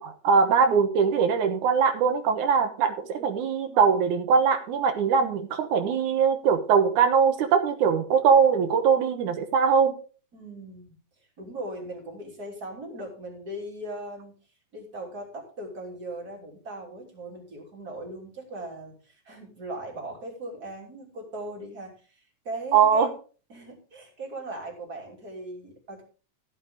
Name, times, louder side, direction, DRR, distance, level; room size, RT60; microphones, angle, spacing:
voice 1, 0.0-9.9 22.7-23.1, right 6 dB, 75° right, 7 dB, 2.7 m, -21 dB
voice 2, 10.3-11.0 11.4-14.4 14.7-23.2 23.5-26.0, right 1 dB, 30° right, 0 dB, 3.5 m, -39 dB
14.5 x 8.7 x 3.6 m, 0.37 s
omnidirectional pair, 3.6 m